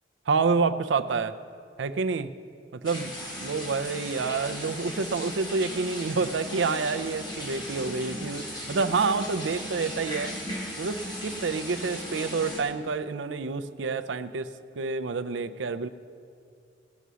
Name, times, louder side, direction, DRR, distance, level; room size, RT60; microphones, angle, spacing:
voice 1, 0.3-1.4 1.8-2.3 2.7-3.1 3.4-10.3 10.8-15.9, right 4 dB, 80° right, 12 dB, 0.5 m, -28 dB
sound 1, 2.8-12.6, equal, 25° left, 2.4 m, -37 dB
17.5 x 6.8 x 6.2 m, 2.4 s
head